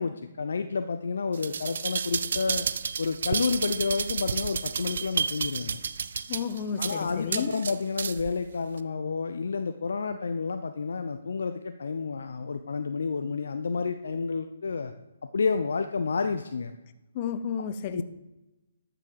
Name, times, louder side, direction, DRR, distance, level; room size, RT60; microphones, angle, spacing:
voice 1, 0.0-2.7 3.0-5.8 6.8-14.9 15.3-16.7 17.9-18.0, left 4 dB, 70° left, 0.7 m, -30 dB
sound 1, 1.3-8.3 8.8-8.9, right 6 dB, 60° right, 0.6 m, -31 dB
voice 2, 6.3-7.5 17.1-18.0, left 7 dB, 35° left, 0.8 m, -32 dB
12.0 x 6.1 x 6.8 m
figure-of-eight pair, 140°, 0 cm